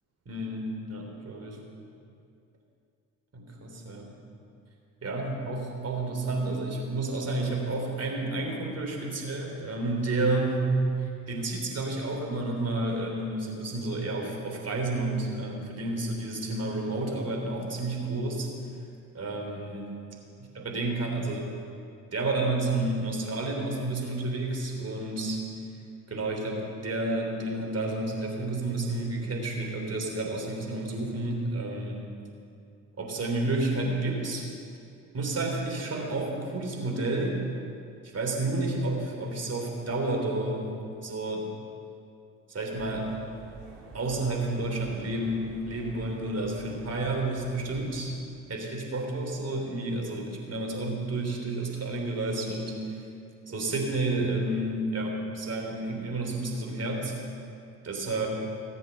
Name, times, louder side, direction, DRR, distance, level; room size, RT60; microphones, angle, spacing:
voice 1, 0.3-1.6 3.3-4.2 5.0-18.5 19.1-20.0 20.6-21.5 22.1-25.4 26.1-32.1 33.0-34.5 35.1-37.4 38.1-40.8 41.0-41.4 42.5-43.1 43.9-48.1 48.5-53.0 53.5-57.1 57.8-58.3, right 2 dB, 35° right, 0 dB, 3.5 m, -30 dB
sound 1, 42.8-48.0, right 3 dB, 65° right, 3.1 m, -49 dB
18.5 x 7.7 x 7.0 m, 2.5 s
hypercardioid pair, 55°, 43 cm